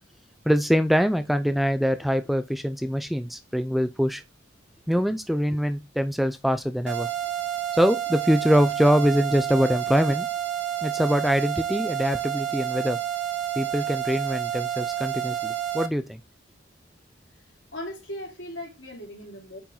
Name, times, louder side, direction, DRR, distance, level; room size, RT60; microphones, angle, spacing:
voice 1, 0.5-4.2 4.9-7.1 7.7-10.3 10.8-13.0 13.6-16.2, equal, ahead, 0.4 m, -23 dB
sound 1, 6.9-15.9, right 11 dB, 75° right, 1.0 m, -29 dB
voice 2, 17.4-19.6, left 1 dB, 80° left, 3.2 m, -38 dB
8.5 x 4.4 x 4.0 m
head